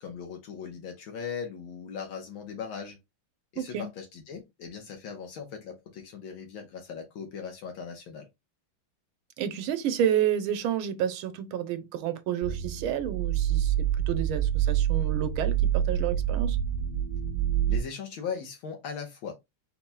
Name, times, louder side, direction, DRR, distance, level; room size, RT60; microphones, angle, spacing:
voice 1, 0.0-3.0 3.5-8.3 17.7-19.3, left 6 dB, 75° left, 1.8 m, -39 dB
voice 2, 3.6-3.9 9.4-16.6, right 10 dB, 80° right, 1.6 m, -30 dB
sound 1, 12.4-17.8, right 10 dB, 55° right, 0.4 m, -27 dB
5.4 x 4.5 x 2.2 m
omnidirectional pair, 2.3 m